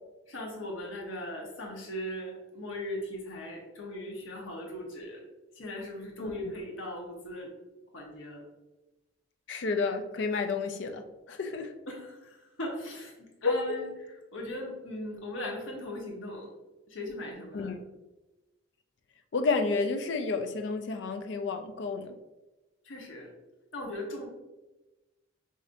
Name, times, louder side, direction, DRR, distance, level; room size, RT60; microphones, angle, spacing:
voice 1, 0.3-5.2 5.5-7.5 7.9-8.4 11.9-16.5 16.9-17.7 22.8-23.3 23.7-24.3, left 1 dB, 80° left, -1 dB, 1.0 m, -39 dB
voice 2, 6.2-6.5 9.5-11.0 11.3-11.7 13.4-13.8 17.5-17.8 19.3-22.2, left 4 dB, 60° left, 7 dB, 0.4 m, -30 dB
5.0 x 2.7 x 2.5 m, 1.1 s
head